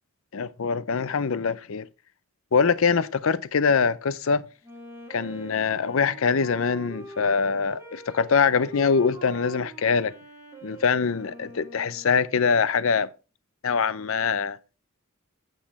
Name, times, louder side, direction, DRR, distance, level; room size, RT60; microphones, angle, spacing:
voice 1, 0.3-1.9 2.5-4.4 5.1-10.1 10.6-13.1 13.6-14.6, left 5 dB, 70° left, 0.5 m, -23 dB
Wind instrument woodwind instrument, 4.6-12.3, right 3 dB, 15° right, 3.3 m, -43 dB
8.3 x 6.0 x 4.2 m
head